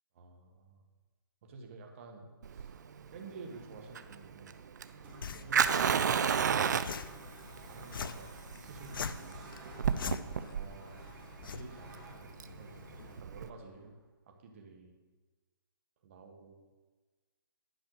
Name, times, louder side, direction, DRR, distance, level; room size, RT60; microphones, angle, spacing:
voice 1, 0.1-0.8 1.4-2.8 3.1-4.6 5.2-6.5 7.7-9.4 10.0-11.0 11.4-14.0 14.3-14.9 16.0-16.6, right 3 dB, 35° right, 2 dB, 1.6 m, -51 dB
Fire, 2.4-13.5, right 7 dB, 50° right, 0.5 m, -33 dB
sound 1, 4.7-14.1, right 2 dB, 15° right, 2.6 m, -55 dB
sound 2, 5.2-13.2, left 6 dB, 65° left, 0.6 m, -44 dB
11.0 x 5.6 x 6.6 m, 1.3 s
hypercardioid pair, 165°, 12 cm